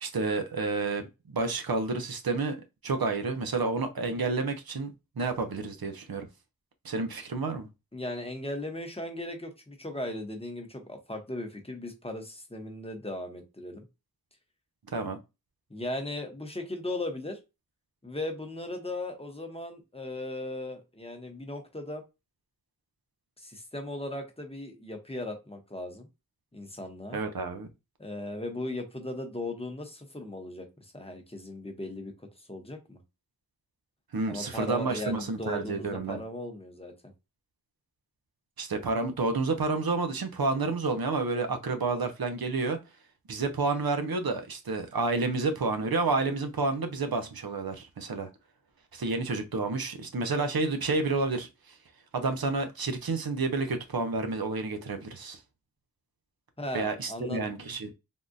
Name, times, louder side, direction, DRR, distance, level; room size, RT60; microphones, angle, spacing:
voice 1, 0.0-2.6 2.8-6.3 6.8-7.7 14.9-15.2 27.1-27.7 34.1-36.2 38.6-42.8 43.3-48.3 48.9-51.7 52.1-55.4 56.7-57.9, right 3 dB, 90° right, 0.7 m, -30 dB
voice 2, 7.9-13.8 15.7-17.4 18.0-22.0 23.4-26.1 26.5-27.2 28.0-33.0 34.3-36.9 56.6-57.5, left 1 dB, 15° left, 0.8 m, -37 dB
3.6 x 2.3 x 2.6 m
wide cardioid pair, 45°, 35 cm